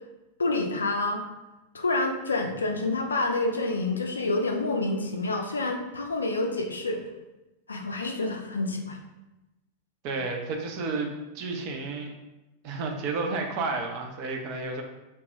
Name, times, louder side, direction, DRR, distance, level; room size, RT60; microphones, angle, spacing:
voice 1, 0.4-1.2 1.7-7.0 7.7-9.0, left 2 dB, 75° left, 3 dB, 0.3 m, -28 dB
voice 2, 10.0-11.1 11.3-12.1 12.6-14.8, right 3 dB, 45° right, 3 dB, 0.5 m, -31 dB
2.9 x 2.2 x 3.1 m, 1.0 s
figure-of-eight pair, 90°, 0 cm